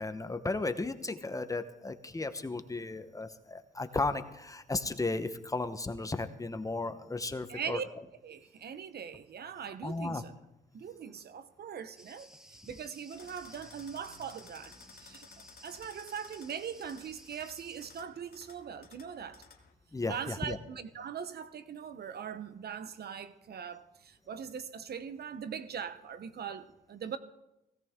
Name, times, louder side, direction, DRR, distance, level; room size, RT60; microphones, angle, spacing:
voice 1, 0.0-7.8 9.8-10.2 19.9-20.6, left 3 dB, 15° left, 1.0 m, -35 dB
voice 2, 7.5-7.8 8.2-10.3 10.7-15.3 15.6-19.4 20.1-27.2, right 7 dB, 55° right, 0.9 m, -41 dB
Cricket, 12.0-18.0, equal, 5° right, 1.5 m, -56 dB
sound 1, 13.1-19.7, left 5 dB, 50° left, 2.0 m, -56 dB
17.0 x 16.5 x 3.7 m
cardioid pair, 90°, 20 cm